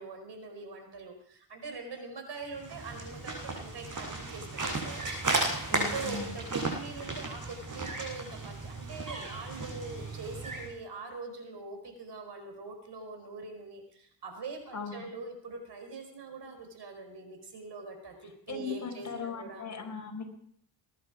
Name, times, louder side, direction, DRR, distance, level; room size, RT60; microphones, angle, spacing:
voice 1, 0.0-19.6, right 3 dB, 60° right, 5 dB, 4.8 m, -43 dB
sound 1, 2.5-10.7, right 2 dB, 40° right, 6.6 m, -35 dB
voice 2, 5.7-6.3 14.7-15.0 18.5-20.3, left 4 dB, 40° left, 3 dB, 4.5 m, -38 dB
21.0 x 11.0 x 5.0 m, 0.66 s
cardioid pair, 85°, 45 cm